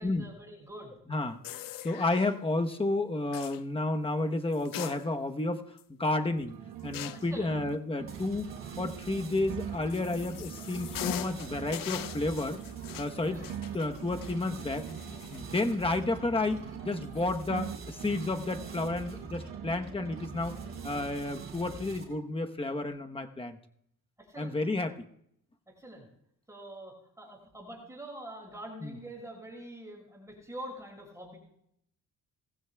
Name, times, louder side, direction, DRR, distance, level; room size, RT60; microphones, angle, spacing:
voice 1, 0.0-1.0 7.1-7.5 13.3-13.5 24.2-24.6 25.7-26.1 26.5-31.4, right 1 dB, 10° right, -1 dB, 5.9 m, -45 dB
sound 1, 1.4-2.3 3.3-3.6 4.5-5.4 5.8-5.9 6.9-7.4 9.4-15.5 15.9-16.0 16.9-17.2, left 12 dB, 70° left, 0.6 m, -42 dB
voice 2, 1.8-5.6 6.0-6.5 6.8-8.5 8.8-12.6 13.0-13.4 13.7-15.0 15.3-20.5 20.8-23.6 24.4-25.0 28.8-29.0, left 2 dB, 15° left, 6 dB, 1.0 m, -31 dB
sound 2, 6.2-7.7 8.0-11.7 12.0-15.7 16.0-19.7 20.0-21.4, right 10 dB, 75° right, 1.0 m, -44 dB
sound 3, 8.1-22.3, right 4 dB, 40° right, 3.5 m, -45 dB
19.5 x 15.0 x 2.3 m, 0.72 s
cardioid pair, 115°, 34 cm